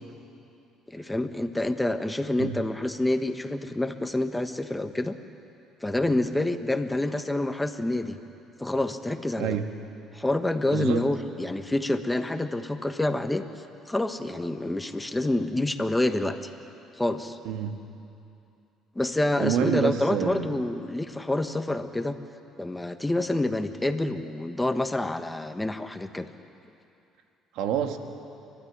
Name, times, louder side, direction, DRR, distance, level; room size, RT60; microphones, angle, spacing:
voice 1, 0.9-5.2 5.8-8.2 8.6-9.6 10.1-13.4 13.9-16.5 17.0-17.4 18.9-22.2 22.6-26.3, left 1 dB, 10° left, 8 dB, 1.3 m, -27 dB
voice 2, 9.4-9.7 10.7-11.0 17.4-17.8 19.4-20.6 27.5-28.0, right 8 dB, 75° right, 6 dB, 1.7 m, -27 dB
29.0 x 13.0 x 10.0 m, 2.7 s
supercardioid pair, 75°, 0 cm